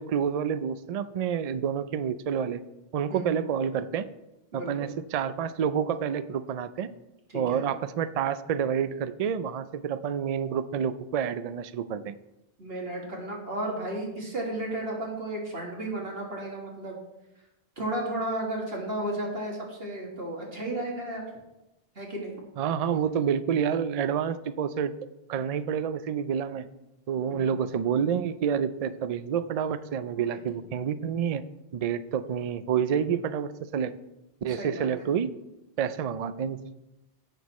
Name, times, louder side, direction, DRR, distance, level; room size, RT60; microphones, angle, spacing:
voice 1, 0.0-2.6 2.9-4.1 4.5-6.9 7.3-12.1 22.6-24.9 25.3-26.7 27.1-31.4 31.7-33.9 34.4-35.3 35.8-36.6, right 8 dB, 50° right, 12 dB, 0.5 m, -28 dB
voice 2, 4.5-5.0 7.3-7.6 12.6-17.0 17.8-21.2 22.0-22.4 27.3-27.5 30.1-30.4 34.5-35.1, right 1 dB, 70° right, -2 dB, 2.1 m, -34 dB
16.5 x 6.3 x 3.1 m, 0.94 s
omnidirectional pair, 1.0 m